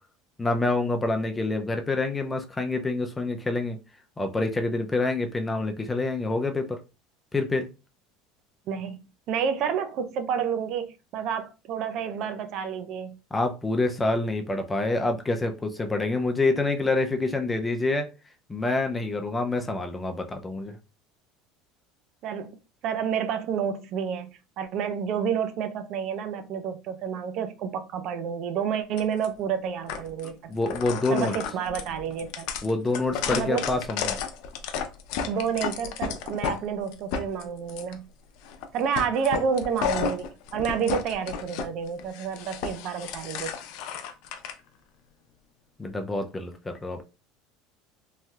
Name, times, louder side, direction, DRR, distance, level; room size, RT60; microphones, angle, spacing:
voice 1, 0.4-3.8 4.2-6.8 7.3-7.7 13.3-18.1 18.5-20.8 30.5-31.3 32.6-34.2 45.8-47.0, left 2 dB, 15° left, 0.5 m, -27 dB
voice 2, 8.7-13.2 22.2-22.6 22.8-30.6 31.1-32.5 33.3-33.6 35.3-38.0 38.7-40.3 40.5-43.5, right 7 dB, 55° right, 0.5 m, -29 dB
sound 1, 29.0-29.3 29.9-30.3 30.6-36.6 36.9-37.9 38.4-38.7 38.9-41.7 42.0-44.5, left 7 dB, 70° left, 0.5 m, -32 dB
3.2 x 2.7 x 2.3 m
supercardioid pair, 125°, 0 cm